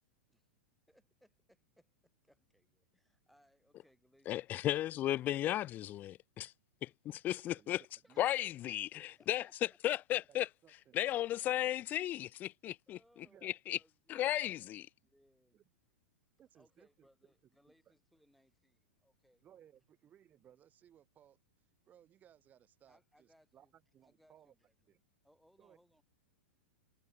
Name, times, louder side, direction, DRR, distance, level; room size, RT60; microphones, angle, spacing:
voice 1, 0.9-5.3 7.3-7.5 8.0-8.5 8.9-9.8 12.6-15.6 16.5-19.5 22.9-23.7 24.0-24.9 25.2-26.0, equal, ahead, 6.7 m, -71 dB
voice 2, 4.3-6.5 6.8-7.8 8.2-9.4 9.8-10.5 10.9-13.0 13.4-13.8 14.1-14.9, left 13 dB, 30° left, 0.4 m, -35 dB
voice 3, 7.5-8.4 10.3-11.7 13.2-13.5 14.2-14.4 14.8-14.9 15.5-15.7 16.4-17.1 19.4-21.4 21.8-24.5 24.9-25.0 25.6-25.8, right 10 dB, 25° right, 4.5 m, -64 dB
figure-of-eight pair, 100°, 6 cm